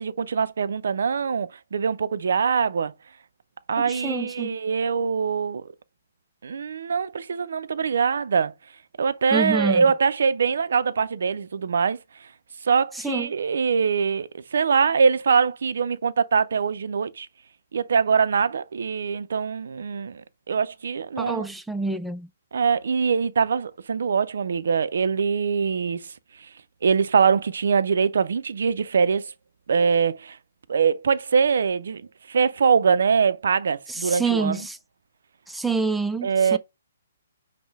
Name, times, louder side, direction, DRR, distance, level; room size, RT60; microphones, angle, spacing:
voice 1, 0.0-2.9 3.7-5.7 6.4-8.5 9.0-12.0 12.7-17.3 17.7-21.5 22.5-26.1 26.8-29.3 29.7-30.4 30.7-34.6 36.2-36.6, right 6 dB, 70° right, 0.4 m, -23 dB
voice 2, 3.9-4.5 9.3-9.8 13.0-13.3 21.2-22.3 33.9-34.8 35.5-36.6, right 4 dB, 5° right, 0.4 m, -27 dB
5.4 x 2.1 x 4.5 m
hypercardioid pair, 140°, 0 cm